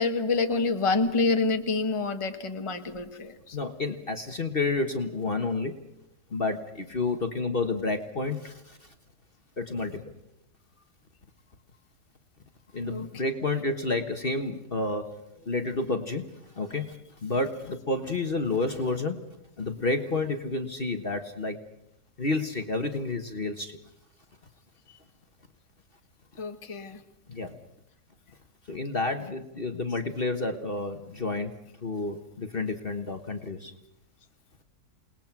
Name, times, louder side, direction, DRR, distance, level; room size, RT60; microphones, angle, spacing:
voice 1, 0.0-3.6 12.9-13.1 24.9-25.0 26.4-27.0, left 3 dB, 20° left, 5 dB, 1.4 m, -27 dB
voice 2, 3.5-5.7 6.3-8.9 9.6-10.1 12.7-15.1 15.4-17.0 17.2-19.2 19.6-21.6 22.2-23.8 27.3-27.6 28.7-33.7, left 3 dB, 35° left, 6 dB, 1.5 m, -30 dB
28.5 x 20.0 x 6.0 m, 0.86 s
omnidirectional pair, 1.7 m